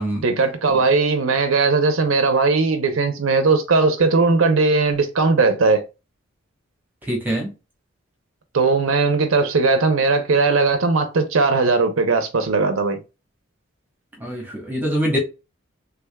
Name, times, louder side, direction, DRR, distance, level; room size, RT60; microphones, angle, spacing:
voice 1, 0.2-5.8 8.5-13.0, right 3 dB, 85° right, 0.6 m, -18 dB
voice 2, 7.0-7.5 14.2-15.2, equal, 10° right, 1.0 m, -24 dB
3.4 x 3.4 x 2.2 m
head